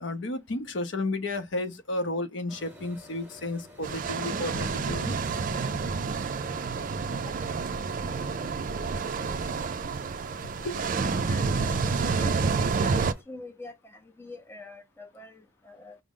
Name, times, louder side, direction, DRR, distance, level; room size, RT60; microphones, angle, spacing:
voice 1, 0.0-5.2 9.4-9.5 10.6-10.8, left 2 dB, 65° left, 0.7 m, -32 dB
sound 1, 2.5-13.2, left 1 dB, 10° right, 1.0 m, -52 dB
sound 2, 3.8-13.1, right 4 dB, 40° right, 0.4 m, -29 dB
voice 2, 8.0-8.5 11.2-16.0, left 1 dB, 10° left, 0.6 m, -45 dB
4.9 x 2.0 x 3.6 m
head